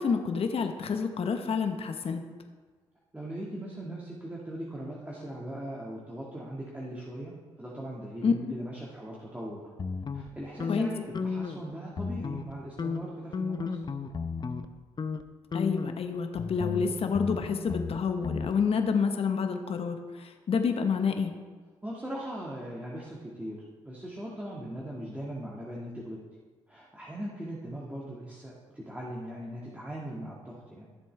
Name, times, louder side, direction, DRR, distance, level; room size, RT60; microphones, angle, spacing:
voice 1, 0.0-2.2 8.2-8.5 10.7-10.9 15.5-21.3, left 5 dB, 55° left, 6 dB, 1.0 m, -28 dB
voice 2, 3.1-9.7 10.1-13.8 21.8-26.2 26.7-30.9, right 1 dB, 10° right, -5 dB, 1.8 m, -39 dB
sound 1, 9.8-11.7 11.9-12.5 12.8-14.7 15.0-15.2 15.5-18.5, left 5 dB, 35° left, 0.7 m, -34 dB
14.0 x 7.5 x 3.4 m, 1.5 s
supercardioid pair, 50°, 12 cm